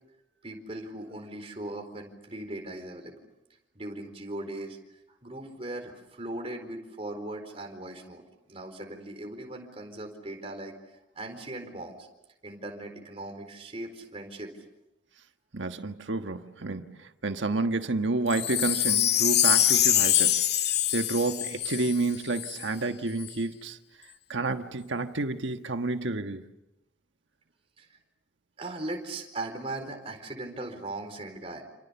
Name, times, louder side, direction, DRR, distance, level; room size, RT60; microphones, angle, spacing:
voice 1, 0.4-3.1 3.7-4.8 5.2-8.2 8.5-10.7 11.2-12.1 12.4-14.5 27.8-27.9 28.6-31.6, right 2 dB, 30° right, 4.3 m, -38 dB
voice 2, 15.5-20.4 20.9-23.8 24.3-26.4, right 3 dB, 80° right, 1.4 m, -30 dB
Wind chime, 18.3-22.6 23.2-23.3, left 11 dB, 60° left, 1.8 m, -24 dB
29.0 x 27.5 x 7.1 m
head